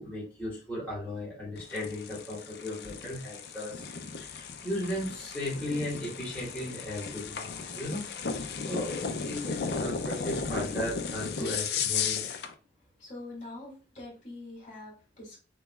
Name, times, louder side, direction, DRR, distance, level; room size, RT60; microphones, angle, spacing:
voice 1, 0.0-3.8 4.2-8.1 8.7-12.3, left 1 dB, 10° left, -9 dB, 2.3 m, -36 dB
sound 1, 1.6-12.5, left 5 dB, 70° left, 0.6 m, -35 dB
voice 2, 13.0-15.4, left 2 dB, 45° left, -5 dB, 2.8 m, -44 dB
7.3 x 3.1 x 2.4 m, 0.34 s
head